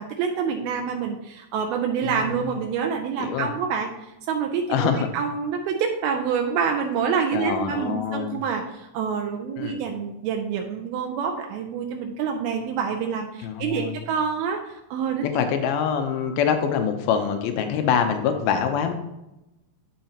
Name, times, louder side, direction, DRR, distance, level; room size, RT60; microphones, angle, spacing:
voice 1, 0.0-3.9 4.3-15.3, right 6 dB, 85° right, 3 dB, 2.6 m, -27 dB
voice 2, 2.0-2.5 3.2-3.5 4.7-5.1 7.3-8.4 9.6-9.7 13.4-14.0 15.3-18.9, left 7 dB, 85° left, 6 dB, 2.6 m, -25 dB
8.8 x 6.7 x 2.9 m, 0.91 s
omnidirectional pair, 4.3 m